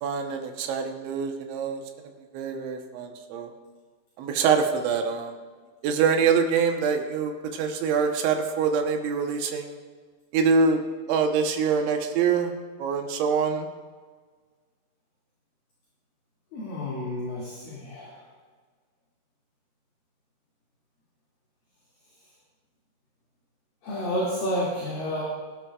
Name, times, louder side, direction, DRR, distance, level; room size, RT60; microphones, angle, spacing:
voice 1, 0.0-1.8 2.3-3.5 4.2-5.3 5.8-9.8 10.3-10.8 11.1-12.5 12.8-13.7, right 5 dB, 80° right, 4 dB, 3.4 m, -25 dB
voice 2, 16.5-18.2 23.8-25.2, equal, 55° left, -6 dB, 3.8 m, -30 dB
23.0 x 11.5 x 2.4 m, 1.5 s
omnidirectional pair, 5.3 m